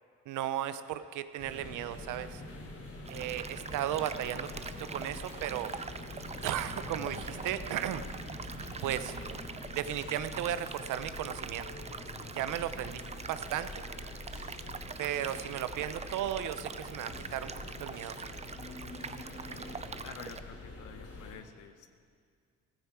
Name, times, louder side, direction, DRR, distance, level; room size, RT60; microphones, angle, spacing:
voice 1, 0.3-2.4 3.1-4.5 4.8-5.7 6.4-8.0 8.8-9.2 9.7-11.7 12.3-13.8 15.0-17.5 17.8-18.3, right 11 dB, 85° right, 12 dB, 0.7 m, -35 dB
sound 1, 1.4-21.3, left 2 dB, 50° left, 4.4 m, -45 dB
Thunder, 3.0-11.8, right 5 dB, 45° right, 1.1 m, -52 dB
sound 2, 3.1-20.4, right 5 dB, 20° right, 0.5 m, -44 dB
voice 2, 20.0-22.0, left 8 dB, 85° left, 8 dB, 0.8 m, -49 dB
15.0 x 14.0 x 4.7 m, 2.1 s
cardioid pair, 90°, 30 cm